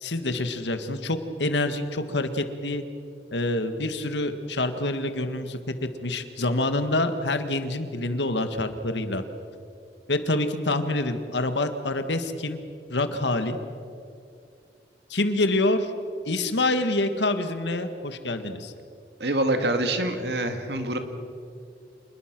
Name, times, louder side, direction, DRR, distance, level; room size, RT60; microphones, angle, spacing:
voice 1, 0.0-2.8 3.3-5.6 6.0-9.2 10.1-12.6 12.9-13.6 15.1-15.9 16.3-18.7, left 2 dB, 85° left, 9 dB, 1.7 m, -26 dB
voice 2, 19.2-21.0, right 1 dB, 70° right, 7 dB, 2.1 m, -25 dB
27.0 x 21.0 x 6.1 m, 2.5 s
head